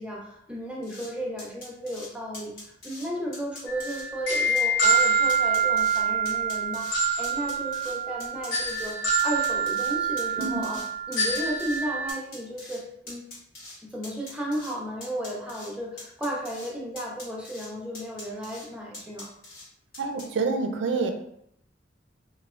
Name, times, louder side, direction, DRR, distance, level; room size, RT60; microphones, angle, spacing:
voice 1, 0.0-2.5 2.8-10.8 11.1-13.2 13.9-19.3, equal, 5° right, -4 dB, 0.5 m, -34 dB
sound 1, 0.8-1.1 1.4-2.1 2.3-3.1 3.3-4.0 4.3-5.0 5.3-6.0 6.3-6.9 7.2-8.9 9.2-10.9 11.1-11.8 12.1-12.8 13.1-13.8 14.0-14.7 15.0-15.7 16.0-16.7 17.0-17.7 17.9-18.7 18.9-19.6 19.9-20.2, left 2 dB, 50° left, 1.1 m, -42 dB
sound 2, 3.7-12.1, right 4 dB, 80° left, 0.8 m, -26 dB
voice 2, 20.0-21.1, right 4 dB, 70° right, 5 dB, 0.4 m, -27 dB
3.2 x 2.1 x 2.4 m, 0.75 s
head